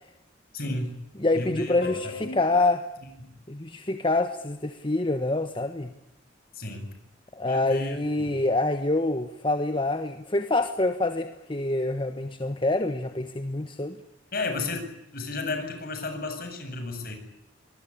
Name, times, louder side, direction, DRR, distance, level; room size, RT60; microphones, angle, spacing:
voice 1, 0.5-0.9 1.3-2.4 3.2-3.3 6.5-6.9 7.4-8.3 14.3-17.2, left 3 dB, 50° left, 6 dB, 7.9 m, -33 dB
voice 2, 1.2-2.9 3.5-5.9 7.3-14.0, left 2 dB, 25° left, 9 dB, 1.3 m, -26 dB
25.0 x 21.0 x 9.9 m, 0.81 s
head